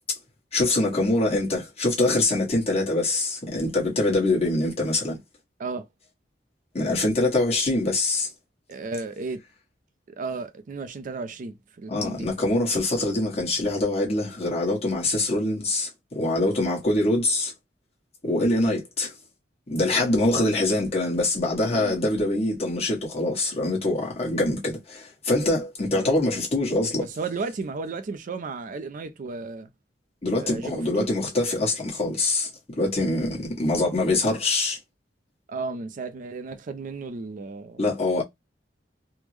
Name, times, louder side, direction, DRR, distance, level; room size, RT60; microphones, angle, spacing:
voice 1, 0.5-5.2 6.7-8.3 11.9-17.5 18.2-19.1 19.7-27.1 30.2-32.5 32.8-34.8 37.8-38.2, left 2 dB, 35° left, 1.2 m, -24 dB
voice 2, 8.7-9.4 10.1-12.3 21.7-22.0 25.9-26.1 27.0-29.7 30.4-31.1 35.5-37.8, right 4 dB, 50° right, 0.4 m, -34 dB
3.4 x 2.1 x 3.1 m
head